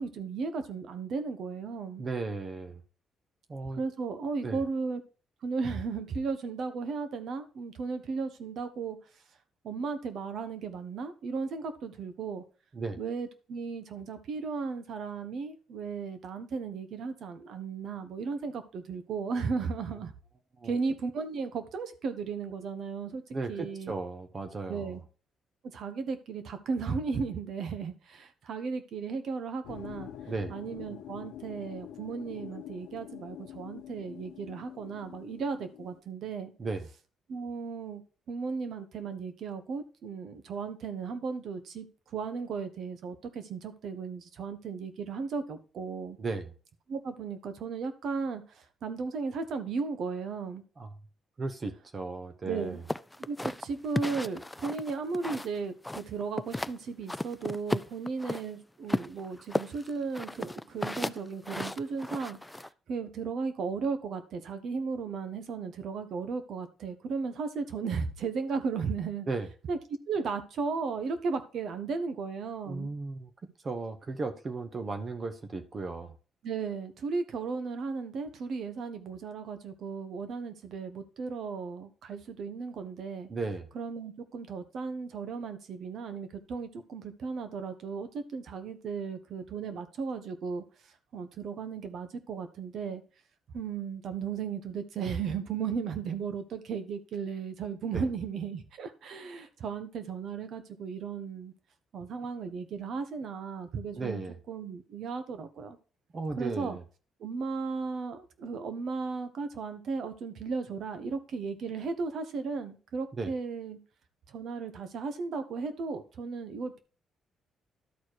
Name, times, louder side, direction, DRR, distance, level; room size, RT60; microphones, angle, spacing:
voice 1, 0.0-2.0 3.7-5.0 5.4-9.0 9.6-12.4 13.0-20.1 20.6-23.2 23.5-23.9 24.7-25.0 25.7-30.1 30.5-36.5 37.3-38.0 38.3-41.9 42.1-46.2 46.9-50.6 52.4-52.8 53.3-69.3 69.7-69.8 70.1-72.9 76.4-83.3 83.7-90.6 91.1-93.0 93.5-101.5 101.9-104.2 104.5-105.8 106.4-106.8 107.2-113.8 114.3-116.8, right 5 dB, 65° right, 1.2 m, -35 dB
voice 2, 2.0-2.8 3.5-3.8 4.4-4.6 12.7-13.0 20.6-20.7 23.3-25.0 30.3-30.5 36.6-36.9 46.2-46.5 50.8-50.9 51.4-52.8 69.3-69.5 72.7-73.3 73.6-76.1 83.3-83.7 97.9-98.0 104.0-104.4 106.1-106.8 113.1-113.3, right 3 dB, 35° right, 1.1 m, -35 dB
sound 1, 29.6-36.0, left 11 dB, 90° left, 0.8 m, -46 dB
sound 2, 52.9-55.6 55.8-56.8 57.1-58.4 58.9-62.7, left 1 dB, 10° left, 0.3 m, -34 dB
12.0 x 4.3 x 4.7 m
cardioid pair, 90°, 0 cm